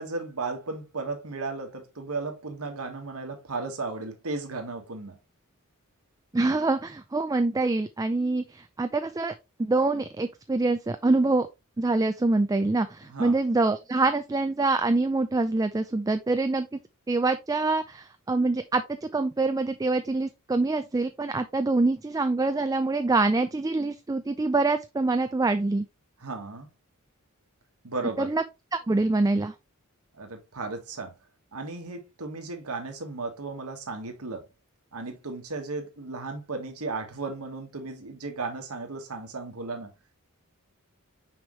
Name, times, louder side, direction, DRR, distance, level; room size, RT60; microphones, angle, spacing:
voice 1, 0.0-5.2 13.0-13.3 26.2-26.7 27.8-28.3 30.2-31.1 31.5-34.4 34.9-39.9, right 3 dB, 80° right, 1.6 m, -35 dB
voice 2, 6.3-9.3 9.6-11.5 11.8-16.7 17.1-25.9 28.2-28.4 28.7-29.5, right 3 dB, 15° right, 0.3 m, -25 dB
6.2 x 5.0 x 3.1 m
head